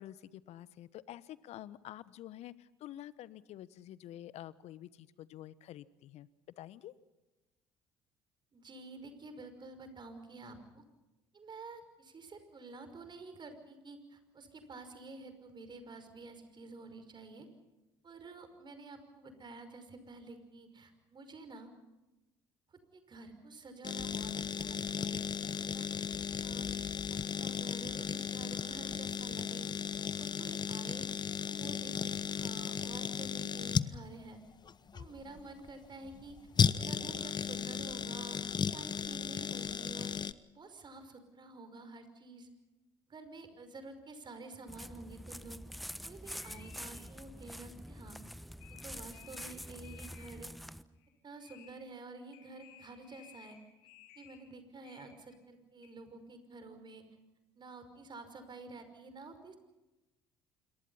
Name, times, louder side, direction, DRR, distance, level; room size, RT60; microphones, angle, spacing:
voice 1, 0.0-6.3 6.6-6.9, left 13 dB, 60° left, 18 dB, 1.1 m, -48 dB
voice 2, 8.5-10.8 11.3-17.5 18.0-21.7 22.7-25.9 26.4-26.7 27.1-29.7 29.9-31.1 31.5-34.4 34.9-36.4 36.8-40.2 40.5-42.5 43.1-45.6 46.0-48.2 48.8-50.5 51.2-53.6 54.2-57.0 57.6-59.6, right 3 dB, 35° right, 9 dB, 5.5 m, -50 dB
sound 1, 23.8-40.3, left 6 dB, 35° left, 1.0 m, -35 dB
sound 2, 44.7-50.8, equal, ahead, 1.1 m, -46 dB
sound 3, 46.3-47.0 48.3-48.4 48.6-49.6 49.8-50.4 51.0-51.1 51.4-51.7 52.3-54.4 54.8-55.4 55.8-55.9, left 10 dB, 75° left, 3.6 m, -58 dB
27.5 x 23.5 x 5.7 m, 1.0 s
hypercardioid pair, 55°, 12 cm